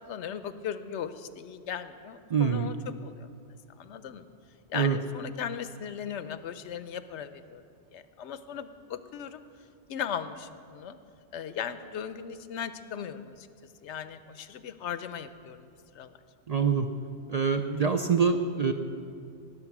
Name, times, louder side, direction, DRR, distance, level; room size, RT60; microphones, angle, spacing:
voice 1, 0.0-4.3 4.7-7.6 7.9-9.4 9.9-11.0 11.3-13.5 13.8-16.1, left 8 dB, 85° left, 12 dB, 0.9 m, -38 dB
voice 2, 2.3-2.7 4.7-5.0 16.5-16.9 17.3-18.7, right 6 dB, 55° right, 6 dB, 0.4 m, -25 dB
19.5 x 7.3 x 6.0 m, 2.4 s
omnidirectional pair, 1.2 m